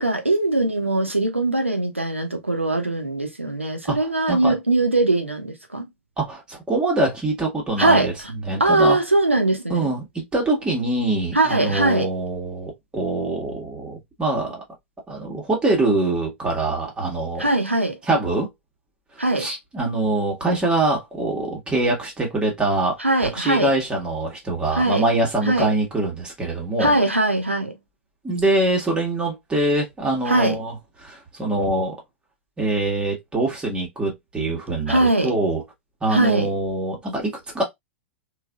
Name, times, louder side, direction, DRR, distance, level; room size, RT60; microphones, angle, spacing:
voice 1, 0.0-5.9 7.8-8.1 8.6-9.9 11.3-12.1 17.4-18.0 19.2-19.5 23.0-23.7 24.7-25.0 25.5-25.7 26.8-27.7 30.3-30.6 34.9-35.3 36.1-36.5, right 2 dB, 90° right, 0.9 m, -21 dB
voice 2, 6.2-8.1 8.5-9.0 9.7-14.6 15.1-17.5 18.1-18.5 19.3-23.0 23.3-26.9 28.2-30.7 31.0-31.9 32.6-35.6 36.0-37.6, right 2 dB, 15° right, 1.5 m, -24 dB
4.0 x 2.5 x 2.4 m
figure-of-eight pair, 95°, 7 cm